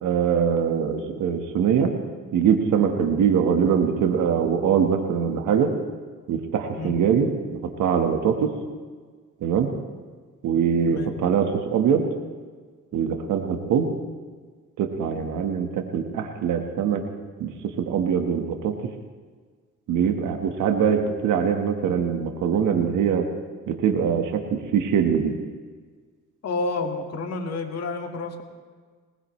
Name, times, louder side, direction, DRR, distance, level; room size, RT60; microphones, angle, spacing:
voice 1, 0.0-1.9 2.3-5.7 6.3-8.5 9.4-9.7 10.4-12.0 12.9-13.9 14.8-17.0 17.4-17.5 17.8-18.7 19.9-23.2 23.7-25.3, right 7 dB, 80° right, 4 dB, 1.5 m, -23 dB
voice 2, 26.4-28.4, left 3 dB, 55° left, 3 dB, 2.0 m, -29 dB
21.0 x 19.0 x 3.2 m, 1.5 s
cardioid pair, 90°, 30 cm